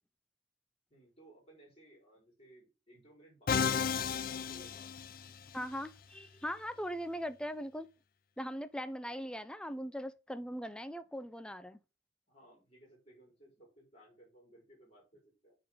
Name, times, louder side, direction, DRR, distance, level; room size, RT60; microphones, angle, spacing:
voice 1, 0.9-3.9 4.3-4.9 12.3-15.6, right 1 dB, 35° left, 5.1 m, -60 dB
Musical instrument, 3.5-5.6, left 6 dB, 50° left, 0.5 m, -33 dB
voice 2, 5.5-7.9 8.4-11.8, equal, 5° left, 0.6 m, -40 dB
9.0 x 3.9 x 5.7 m
head